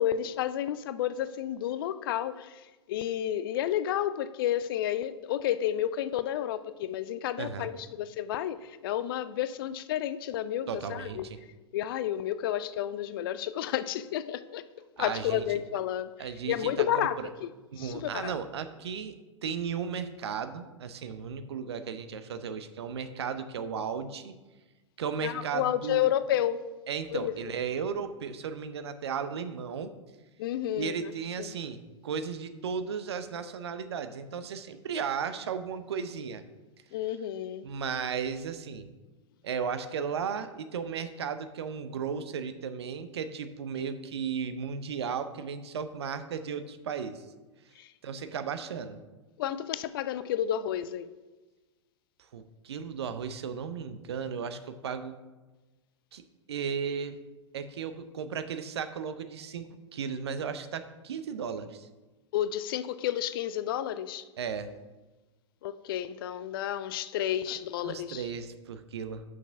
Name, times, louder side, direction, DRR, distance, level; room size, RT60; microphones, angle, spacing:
voice 1, 0.0-2.6 2.9-11.3 11.7-16.1 16.5-17.5 17.8-18.3 25.2-26.6 27.1-27.4 30.4-31.1 31.4-31.5 36.9-37.7 47.8-47.9 49.4-51.1 62.3-64.2 65.6-68.2, left 11 dB, 50° left, 0.4 m, -31 dB
voice 2, 7.4-7.7 10.7-11.4 15.0-15.4 16.2-17.3 17.7-24.4 25.0-26.1 26.9-29.9 30.8-36.4 37.6-38.9 39.4-47.2 48.0-49.0 52.3-55.2 56.1-56.2 56.5-57.2 57.5-61.9 64.4-64.7 67.5-67.6 67.8-69.2, right 6 dB, 60° right, 0.6 m, -35 dB
6.1 x 6.0 x 5.8 m
figure-of-eight pair, 95°, 15 cm